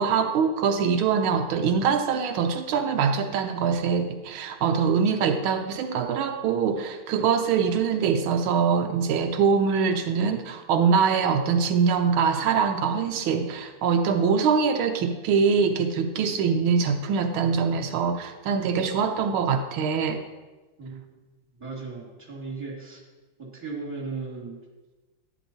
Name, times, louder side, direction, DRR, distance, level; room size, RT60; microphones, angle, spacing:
voice 1, 0.0-20.2, right 6 dB, 90° right, 6 dB, 1.5 m, -23 dB
voice 2, 21.6-23.0 23.4-24.6, right 4 dB, 15° right, -3 dB, 2.2 m, -36 dB
11.0 x 10.5 x 2.9 m, 1.2 s
omnidirectional pair, 2.3 m